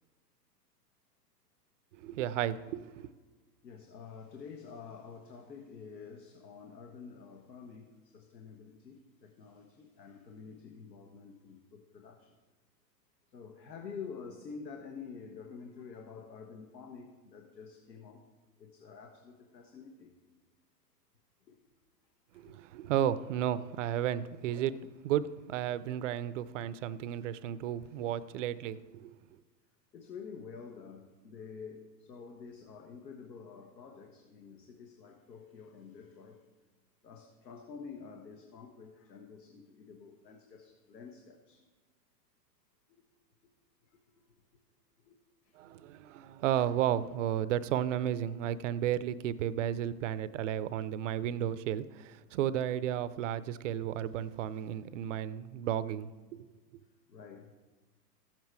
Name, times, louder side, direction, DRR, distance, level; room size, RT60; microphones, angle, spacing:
voice 1, 1.9-3.1 22.3-29.2 45.6-56.5, right 10 dB, 50° right, 16 dB, 0.5 m, -33 dB
voice 2, 3.6-12.3 13.3-18.3 18.6-20.1 21.5-21.6 22.3-22.5 29.9-36.4 37.0-41.6 42.9-43.0 45.1-45.2 54.8-54.9 57.1-57.5, left 5 dB, 85° left, 2 dB, 1.5 m, -48 dB
14.0 x 7.6 x 4.6 m, 1.3 s
hypercardioid pair, 120°, 49 cm